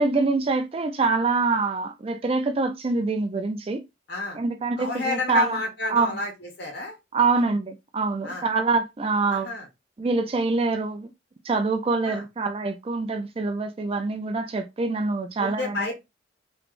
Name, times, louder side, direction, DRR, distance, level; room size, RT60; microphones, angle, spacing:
voice 1, 0.0-3.8 4.3-5.6 5.9-6.2 7.1-9.5 10.0-11.1 11.4-15.8, right 3 dB, 30° right, 0.4 m, -25 dB
voice 2, 4.1-4.4 4.8-7.0 7.4-7.5 8.2-8.4 9.3-9.7 12.0-12.2 15.4-16.0, left 3 dB, 60° left, 1.5 m, -30 dB
3.3 x 3.0 x 2.5 m
head